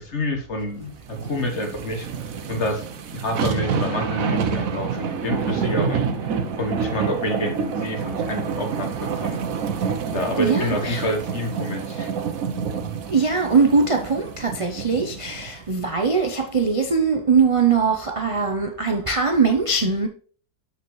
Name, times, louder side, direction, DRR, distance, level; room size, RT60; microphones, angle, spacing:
voice 1, 0.0-2.1 2.5-2.8 3.1-6.1 6.6-9.4 10.1-12.1, left 1 dB, 45° left, 1.7 m, -28 dB
sound 1, 1.1-15.5 15.9-16.0, right 6 dB, 65° right, 1.2 m, -28 dB
voice 2, 10.4-11.1 13.1-20.1, right 5 dB, 40° right, 0.4 m, -21 dB
7.1 x 6.8 x 3.1 m
omnidirectional pair, 1.6 m